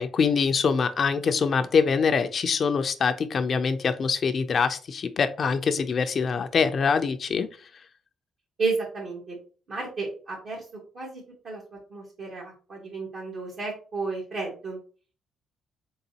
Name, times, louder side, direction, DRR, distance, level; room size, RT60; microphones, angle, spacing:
voice 1, 0.0-7.5, left 5 dB, 50° left, 9 dB, 0.4 m, -24 dB
voice 2, 8.6-9.3 9.7-10.6 10.9-11.6 11.9-14.8, right 4 dB, 60° right, -3 dB, 1.5 m, -32 dB
3.9 x 3.8 x 2.8 m, 0.37 s
cardioid pair, 90°, 0 cm